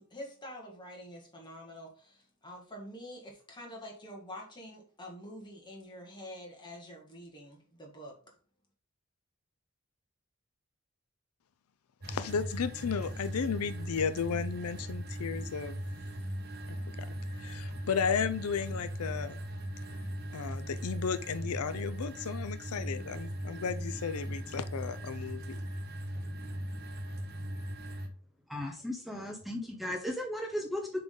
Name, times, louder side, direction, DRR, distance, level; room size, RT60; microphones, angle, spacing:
voice 1, 0.0-8.4, equal, 20° left, 1.8 m, -47 dB
sound 1, 12.0-28.1, equal, 45° right, 1.0 m, -39 dB
voice 2, 12.1-15.8 16.7-19.4 20.3-25.6, left 6 dB, 90° left, 0.5 m, -34 dB
voice 3, 28.5-31.0, left 1 dB, ahead, 0.7 m, -36 dB
7.0 x 3.9 x 3.8 m
head